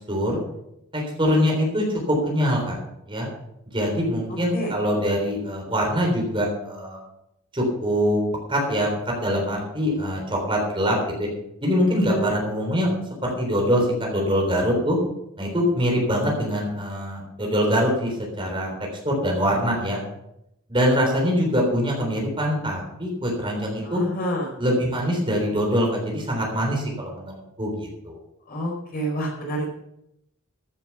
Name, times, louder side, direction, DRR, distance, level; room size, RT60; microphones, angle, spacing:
voice 1, 0.1-0.4 0.9-2.8 3.1-3.3 3.7-7.0 7.5-8.2 8.5-11.3 11.6-12.9 13.2-15.0 15.4-18.7 19.0-20.0 20.7-24.0 24.6-27.3 27.6-28.2, equal, 25° right, 0 dB, 3.6 m, -23 dB
voice 2, 11.8-12.3 23.8-24.5 28.5-29.7, right 1 dB, 40° left, 0 dB, 4.4 m, -28 dB
14.5 x 8.2 x 5.8 m, 0.82 s
head